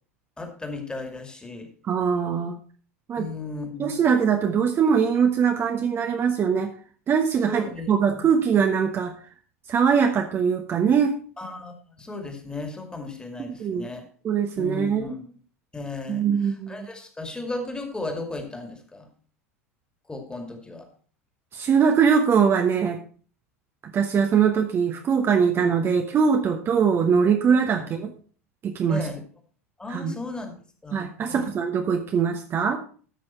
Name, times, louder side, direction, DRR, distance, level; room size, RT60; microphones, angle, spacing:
voice 1, 0.4-1.7 3.2-4.0 7.5-8.3 11.4-14.0 14.6-15.3 15.7-19.1 20.1-20.9 28.9-29.2 29.8-30.5 30.8-31.5, left 2 dB, 10° left, 5 dB, 2.2 m, -35 dB
voice 2, 1.8-2.5 3.1-3.3 3.8-6.7 7.1-9.1 9.7-11.2 13.6-13.9 14.2-15.1 16.1-16.9 21.5-23.0 23.9-28.1 28.6-29.1 29.9-30.1 30.9-32.8, right 6 dB, 30° right, 4 dB, 1.1 m, -22 dB
13.5 x 6.2 x 4.4 m, 0.42 s
figure-of-eight pair, 80°, 8 cm